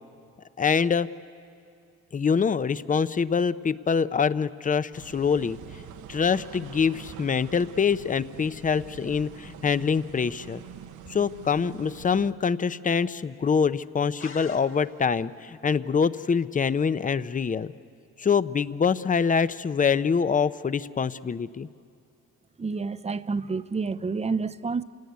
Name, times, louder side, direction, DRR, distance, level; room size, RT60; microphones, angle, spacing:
voice 1, 0.6-1.1 2.1-5.6 6.1-10.6 11.1-17.7 18.2-21.7, left 6 dB, 25° left, 0.6 m, -25 dB
sound 1, 4.9-12.3, right 9 dB, 80° right, 1.0 m, -45 dB
sound 2, 14.2-15.3, left 4 dB, 45° left, 2.0 m, -45 dB
voice 2, 22.6-24.8, right 4 dB, 20° right, 0.6 m, -29 dB
27.5 x 17.0 x 9.5 m
cardioid pair, 90°, 30 cm